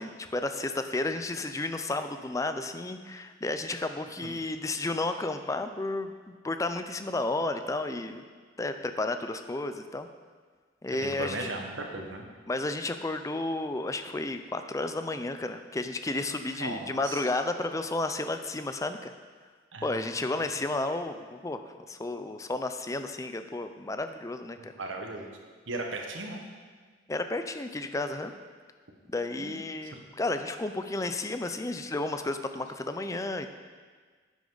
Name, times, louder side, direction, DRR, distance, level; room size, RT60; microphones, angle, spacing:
voice 1, 0.0-8.2 8.6-10.1 10.8-11.4 12.5-19.1 19.8-24.7 27.1-28.3 29.1-33.5, left 2 dB, 15° left, 8 dB, 0.4 m, -32 dB
voice 2, 10.9-12.2 16.5-17.3 19.7-20.0 24.6-25.3 25.7-26.4 29.4-29.6, right 2 dB, 90° right, 2 dB, 1.4 m, -37 dB
10.5 x 8.3 x 4.0 m, 1.5 s
head